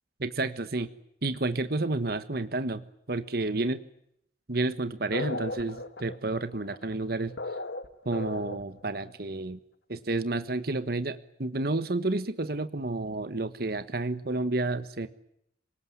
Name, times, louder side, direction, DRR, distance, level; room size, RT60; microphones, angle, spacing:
voice 1, 0.2-0.9 1.2-3.8 4.5-7.3 8.0-9.6 9.9-15.1, right 2 dB, 60° right, 11 dB, 1.3 m, -30 dB
sound 1, 5.1-8.8, left 2 dB, 80° left, 2.1 m, -37 dB
27.5 x 18.5 x 9.8 m, 0.74 s
head